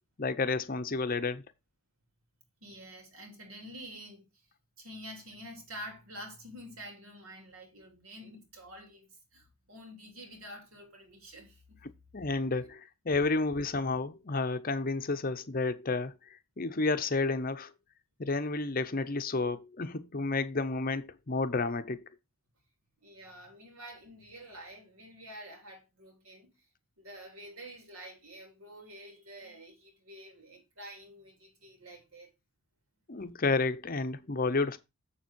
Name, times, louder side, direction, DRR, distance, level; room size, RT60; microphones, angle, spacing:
voice 1, 0.2-1.4 12.1-16.1 16.6-17.7 18.2-22.0 33.1-34.8, left 3 dB, 40° left, 0.7 m, -31 dB
voice 2, 2.6-4.4 4.8-11.8 23.0-26.5 27.0-32.3, equal, 70° right, 3.2 m, -48 dB
7.2 x 7.1 x 4.5 m
head